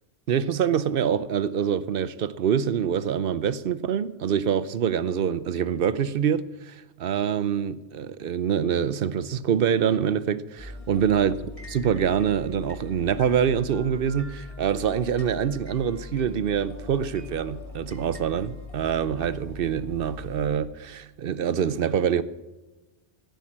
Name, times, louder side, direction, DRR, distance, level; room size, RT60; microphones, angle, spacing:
voice 1, 0.3-11.3 11.7-22.2, right 8 dB, 60° right, 0.8 m, -25 dB
sound 1, 10.6-20.6, left 3 dB, 30° left, 2.8 m, -41 dB
15.5 x 9.3 x 7.4 m
omnidirectional pair, 1.2 m